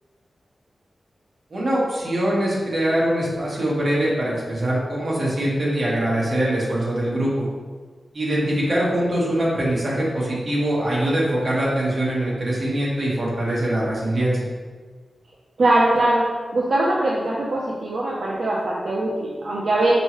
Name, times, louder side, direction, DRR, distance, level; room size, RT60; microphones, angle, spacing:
voice 1, 1.5-7.5 8.1-14.5, right 1 dB, 45° right, -6 dB, 1.3 m, -23 dB
voice 2, 15.6-16.2 16.5-19.9, right 1 dB, 70° right, -5 dB, 0.6 m, -21 dB
5.4 x 3.1 x 3.0 m, 1.5 s
wide cardioid pair, 125°, 0 cm